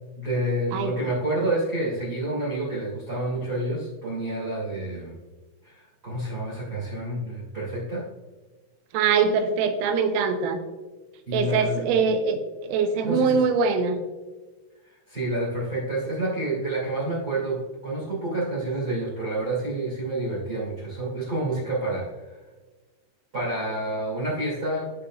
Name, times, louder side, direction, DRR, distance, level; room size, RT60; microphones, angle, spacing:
voice 1, 0.1-5.1 5.6-8.0 11.3-12.0 13.0-13.4 14.9-22.3 23.3-24.9, right 1 dB, 35° right, -4 dB, 1.6 m, -29 dB
voice 2, 8.9-10.6 11.3-14.0, right 5 dB, 85° right, 6 dB, 3.5 m, -23 dB
13.0 x 4.8 x 2.4 m, 1.3 s
omnidirectional pair, 5.8 m